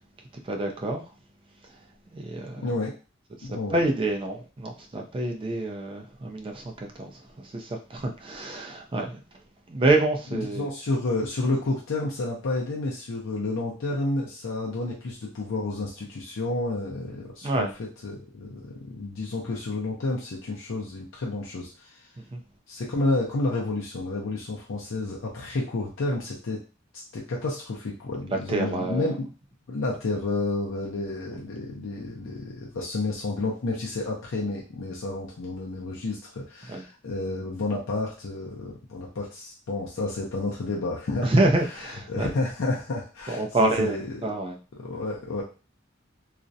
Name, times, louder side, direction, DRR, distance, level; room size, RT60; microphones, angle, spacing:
voice 1, 0.5-1.0 2.1-2.6 3.7-7.1 7.4-9.2 9.7-10.7 17.4-17.7 22.3-22.4 28.3-29.1 36.7-36.8 41.2-42.3 43.3-44.6, right 2 dB, 25° right, 2 dB, 0.3 m, -27 dB
voice 2, 2.6-2.9 3.4-3.8 10.3-22.0 22.7-26.6 26.9-29.3 29.7-41.3 41.7-44.3 44.8-45.4, left 2 dB, 70° left, -3 dB, 0.5 m, -30 dB
2.4 x 2.0 x 2.6 m, 0.34 s
head